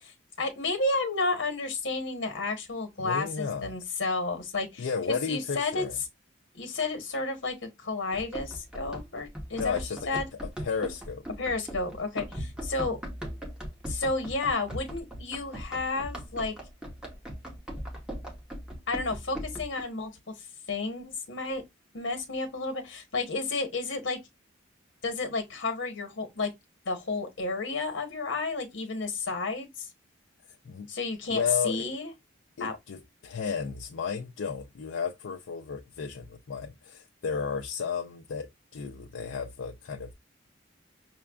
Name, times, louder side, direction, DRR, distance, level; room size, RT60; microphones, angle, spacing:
voice 1, 0.0-5.8 6.5-9.8 10.1-10.2 11.4-13.0 13.9-16.6 18.9-20.1 20.4-21.6 21.9-24.2 25.0-26.5 26.8-29.9 30.9-32.1 32.6-32.8, left 3 dB, 70° left, 1.1 m, -31 dB
voice 2, 3.0-3.7 4.8-6.0 9.6-10.0 10.6-11.2 30.6-30.9 31.3-31.9 32.6-40.1, left 6 dB, 85° left, 0.4 m, -33 dB
Run, 8.1-19.8, equal, 5° right, 0.7 m, -39 dB
5.7 x 2.2 x 2.3 m
head